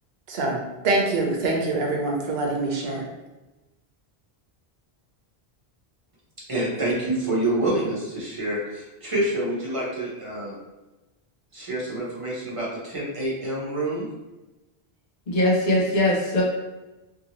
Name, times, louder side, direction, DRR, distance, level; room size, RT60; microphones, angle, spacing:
voice 1, 0.3-3.0, right 2 dB, 75° right, 0 dB, 0.9 m, -25 dB
voice 2, 6.5-10.6 11.5-14.1, right 1 dB, 35° right, -6 dB, 0.9 m, -27 dB
voice 3, 15.3-16.4, left 1 dB, 50° left, -4 dB, 0.8 m, -21 dB
2.7 x 2.7 x 2.9 m, 1.1 s
omnidirectional pair, 1.1 m